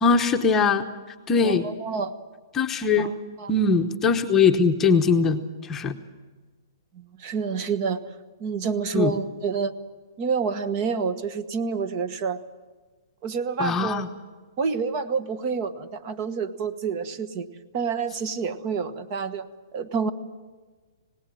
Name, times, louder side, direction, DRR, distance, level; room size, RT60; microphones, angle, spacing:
voice 1, 0.0-0.9 1.3-1.7 2.5-3.1 3.5-5.9 8.9-9.1 13.6-14.1, left 4 dB, 15° left, 5 dB, 1.0 m, -21 dB
voice 2, 1.4-2.1 3.0-3.5 6.9-8.0 8.4-9.7 10.2-12.4 13.2-14.0 14.6-17.5 17.7-19.5 19.7-20.1, right 5 dB, 35° right, 11 dB, 1.3 m, -28 dB
26.5 x 18.5 x 7.8 m, 1.4 s
hypercardioid pair, 155°, 2 cm